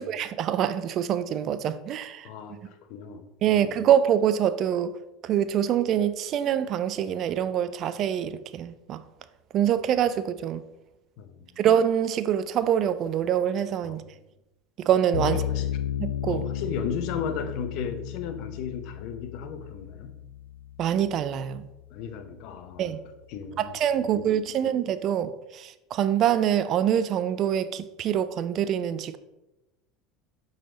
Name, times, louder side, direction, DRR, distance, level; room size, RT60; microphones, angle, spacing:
voice 1, 0.0-2.3 3.4-4.9 5.2-9.0 9.5-10.6 11.6-14.0 14.9-15.4 16.0-16.4 20.8-21.7 22.8-23.0 23.6-29.2, right 9 dB, 50° right, 0.4 m, -25 dB
voice 2, 2.2-3.6 11.2-11.6 13.8-14.0 15.2-15.8 16.2-20.1 21.9-23.0 23.3-24.3 24.6-24.8, left 6 dB, 60° left, 0.7 m, -36 dB
sound 1, 15.1-22.2, left 11 dB, 90° left, 0.3 m, -34 dB
6.4 x 4.0 x 3.9 m
hypercardioid pair, 75°, 0 cm